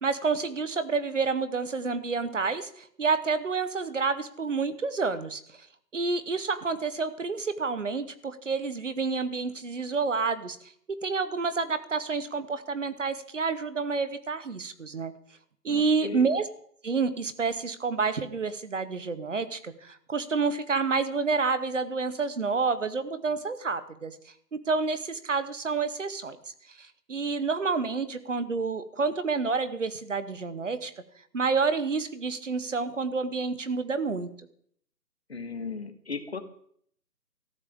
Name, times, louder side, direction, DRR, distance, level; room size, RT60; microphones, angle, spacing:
voice 1, 0.0-5.4 5.9-10.6 11.0-15.1 15.6-16.5 16.8-24.1 24.5-26.4 26.8-30.9 31.3-34.3, right 4 dB, 50° right, 13 dB, 1.1 m, -29 dB
voice 2, 15.7-16.3 35.3-36.4, left 4 dB, 40° left, 8 dB, 1.4 m, -36 dB
19.0 x 14.0 x 3.6 m, 0.64 s
hypercardioid pair, 180°, 49 cm